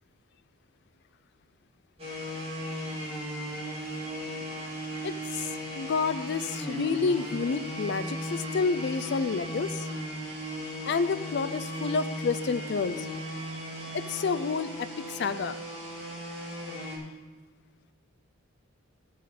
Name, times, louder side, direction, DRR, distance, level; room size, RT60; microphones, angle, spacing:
sound 1, 2.0-17.0, equal, 25° right, 2.2 m, -36 dB
voice 1, 5.0-5.5 5.7-9.9 10.8-13.1 13.9-15.6, left 4 dB, 50° left, 13 dB, 0.3 m, -29 dB
13.0 x 6.3 x 4.1 m, 1.3 s
head